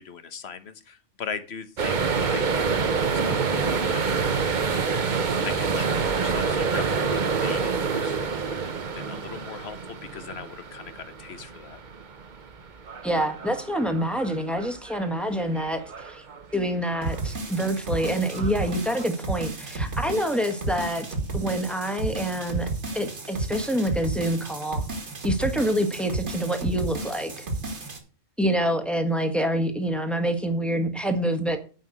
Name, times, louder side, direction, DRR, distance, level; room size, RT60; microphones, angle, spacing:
voice 1, 0.0-3.1 3.4-11.8, left 6 dB, 60° left, 11 dB, 1.3 m, -40 dB
sound 1, 1.8-16.6 16.9-17.3 17.7-19.1, right 5 dB, 40° right, 1.0 m, -28 dB
voice 2, 13.0-16.2 16.5-21.0 21.3-24.8 25.2-27.5 28.4-31.6, equal, ahead, 7 dB, 1.3 m, -26 dB
sound 2, 17.0-28.0, right 2 dB, 65° right, 2.3 m, -32 dB
9.2 x 5.6 x 7.7 m, 0.37 s
omnidirectional pair, 1.3 m